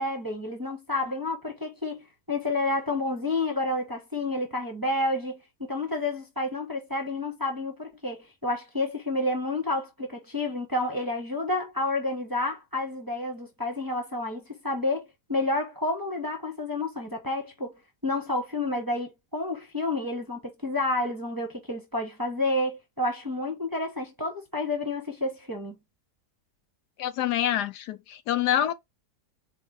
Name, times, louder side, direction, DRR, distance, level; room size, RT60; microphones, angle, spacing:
voice 1, 0.0-5.4 5.7-17.7 18.0-25.7, left 2 dB, 15° right, 0.9 m, -30 dB
voice 2, 27.0-28.7, left 11 dB, 80° left, 1.2 m, -26 dB
4.2 x 3.3 x 3.8 m
omnidirectional pair, 1.7 m